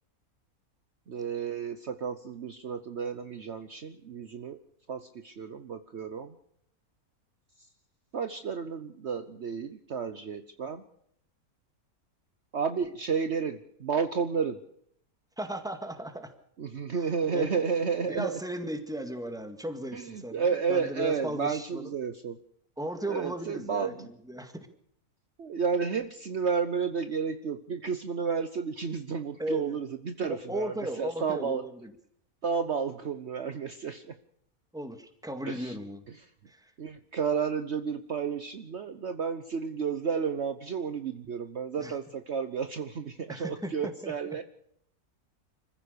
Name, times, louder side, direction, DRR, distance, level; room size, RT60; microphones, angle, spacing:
voice 1, 1.1-4.6 4.9-6.4 8.1-10.8 12.5-14.6 16.6-18.4 19.9-22.3 23.1-24.1 25.4-31.6 32.4-34.2 35.4-35.8 36.1-36.3 36.8-44.4, right 6 dB, 50° right, 9 dB, 1.2 m, -32 dB
voice 2, 15.4-16.3 17.0-17.5 18.1-21.9 22.8-24.7 29.4-29.8 30.3-31.9 34.7-36.1 36.5-36.7 41.8-42.0 43.3-44.1, right 1 dB, ahead, 7 dB, 2.0 m, -36 dB
26.0 x 15.0 x 6.8 m, 0.70 s
omnidirectional pair, 1.5 m